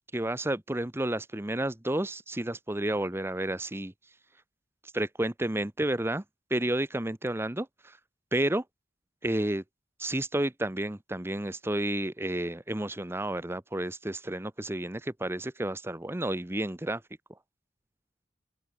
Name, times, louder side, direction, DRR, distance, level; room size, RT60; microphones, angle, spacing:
voice 1, 0.1-3.9 4.9-6.2 6.5-8.0 8.3-8.6 9.2-9.6 10.0-17.0, right 1 dB, 15° right, 0.9 m, -31 dB
open air
head